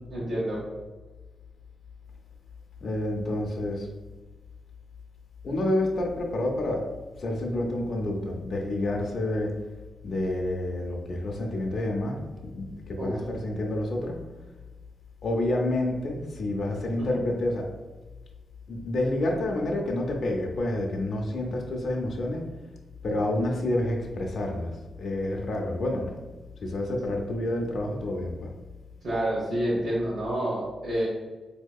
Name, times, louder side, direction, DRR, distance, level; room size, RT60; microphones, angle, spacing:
voice 1, 0.1-0.6 13.0-13.2 17.0-17.1 29.0-31.1, right 1 dB, 65° right, -7 dB, 1.0 m, -28 dB
voice 2, 2.8-3.9 5.4-9.7 10.0-14.2 15.2-17.7 18.7-22.5 23.0-26.3 26.6-28.5, left 1 dB, 60° left, 0 dB, 0.5 m, -29 dB
4.2 x 2.8 x 2.3 m, 1.2 s
wide cardioid pair, 140°, 0 cm